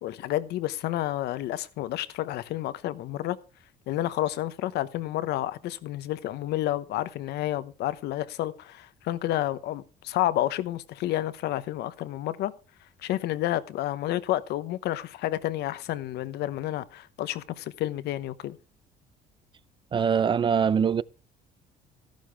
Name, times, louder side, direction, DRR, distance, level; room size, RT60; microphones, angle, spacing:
voice 1, 0.0-3.4 3.9-12.5 13.0-18.6, left 14 dB, 80° left, 0.9 m, -30 dB
voice 2, 19.9-21.0, right 7 dB, 30° right, 0.5 m, -23 dB
13.5 x 11.5 x 3.4 m
cardioid pair, 110°, 17 cm